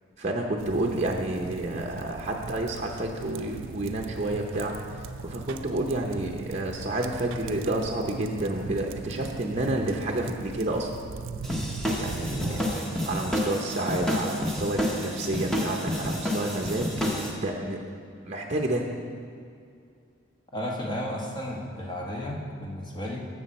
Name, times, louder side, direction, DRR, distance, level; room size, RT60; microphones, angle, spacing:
voice 1, 0.2-11.0 12.0-12.6 13.1-16.9 17.2-17.8 18.2-18.8, right 1 dB, 35° right, 1 dB, 0.7 m, -30 dB
sound 1, 0.6-12.8, right 4 dB, 90° right, 0.5 m, -40 dB
sound 2, 11.4-17.3, equal, ahead, 1.0 m, -29 dB
voice 2, 12.2-13.0 20.5-23.3, left 1 dB, 25° left, -2 dB, 1.3 m, -34 dB
12.5 x 7.6 x 4.2 m, 2.3 s
head